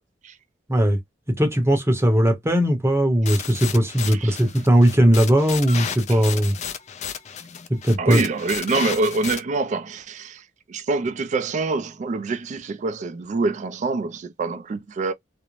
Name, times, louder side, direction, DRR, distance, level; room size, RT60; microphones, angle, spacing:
voice 1, 1.4-6.5 7.7-8.2, equal, 15° right, 0.7 m, -18 dB
sound 1, 3.3-9.4, left 8 dB, 40° left, 0.4 m, -33 dB
voice 2, 4.0-4.4 6.1-6.2 8.0-15.1, right 3 dB, 40° right, 0.3 m, -26 dB
2.5 x 2.0 x 3.0 m
head